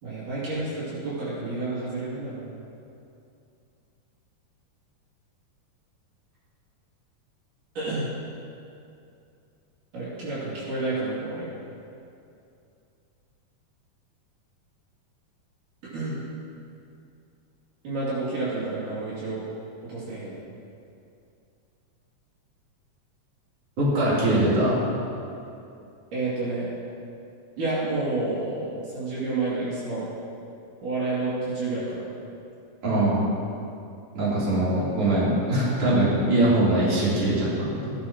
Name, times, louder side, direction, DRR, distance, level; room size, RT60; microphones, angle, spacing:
voice 1, 0.0-2.6 7.8-8.1 9.9-11.5 15.9-16.2 17.8-19.4 19.9-20.3 26.1-26.7 27.6-30.1 30.8-32.1, right 2 dB, 70° right, -9 dB, 4.2 m, -29 dB
voice 2, 23.8-24.8 32.8-33.2 34.1-37.9, right 1 dB, 45° right, -9 dB, 4.4 m, -22 dB
17.5 x 11.5 x 3.0 m, 2.6 s
omnidirectional pair, 3.9 m